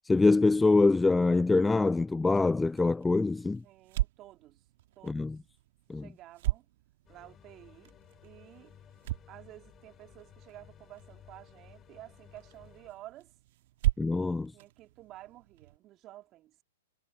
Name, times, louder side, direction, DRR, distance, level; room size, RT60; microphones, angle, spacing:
voice 1, 0.1-3.6 5.0-5.4 5.9-6.0 14.0-14.5, left 3 dB, 10° left, 0.4 m, -24 dB
sound 1, 2.2-15.8, right 17 dB, 55° right, 1.8 m, -39 dB
voice 2, 3.6-4.6 5.0-5.3 5.9-6.7 7.1-8.0 8.2-8.8 9.3-13.3 14.5-16.6, right 15 dB, 30° right, 2.5 m, -52 dB
sound 2, 7.1-12.9, left 9 dB, 25° left, 4.3 m, -57 dB
figure-of-eight pair, 110°, 0 cm